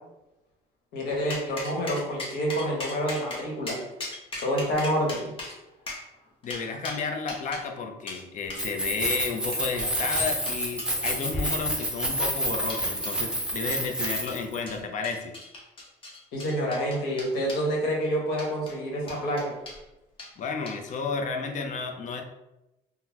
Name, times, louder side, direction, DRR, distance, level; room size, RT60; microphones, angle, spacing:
voice 1, 0.9-3.8 4.4-5.3 16.3-19.4, equal, 80° left, -1 dB, 1.1 m, -28 dB
sound 1, 1.3-7.6 8.1-8.2 8.5-8.6 9.1-11.2 11.7-12.1 12.7-13.1 13.7-14.4 14.7-17.7 18.3-18.7 19.1-19.8 20.2-20.3 20.7-21.0, left 2 dB, 30° left, 1.0 m, -39 dB
voice 2, 6.4-15.4 20.4-22.2, left 4 dB, 50° left, 4 dB, 0.5 m, -32 dB
Keys jangling, 8.5-14.6, right 1 dB, 5° right, 0.6 m, -29 dB
3.7 x 2.1 x 2.9 m, 0.95 s
cardioid pair, 110°, 17 cm